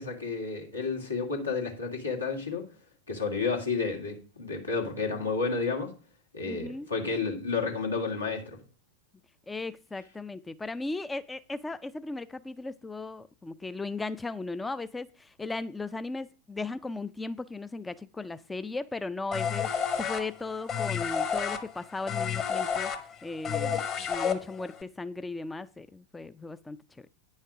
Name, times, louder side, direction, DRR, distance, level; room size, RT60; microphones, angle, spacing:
voice 1, 0.0-2.7 3.1-5.9 6.3-8.6, left 4 dB, 80° left, 2.3 m, -31 dB
voice 2, 6.4-6.9 9.5-23.8 24.1-27.1, left 3 dB, 10° left, 0.3 m, -37 dB
sound 1, 19.3-24.8, left 7 dB, 30° left, 1.2 m, -30 dB
9.5 x 6.4 x 5.0 m
figure-of-eight pair, 90°, 0 cm